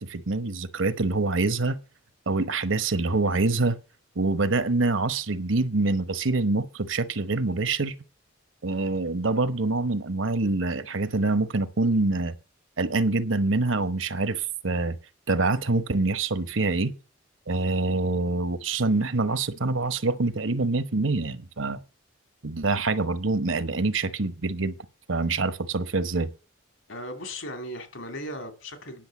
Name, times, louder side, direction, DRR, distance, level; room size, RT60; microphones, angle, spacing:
voice 1, 0.0-1.8 2.3-3.8 4.2-7.9 8.6-12.3 12.8-15.0 15.3-16.9 17.5-21.8 22.4-24.7 25.1-26.3, right 3 dB, 85° right, 1.0 m, -25 dB
voice 2, 26.9-29.1, equal, 80° left, 2.8 m, -37 dB
10.5 x 6.5 x 7.2 m
head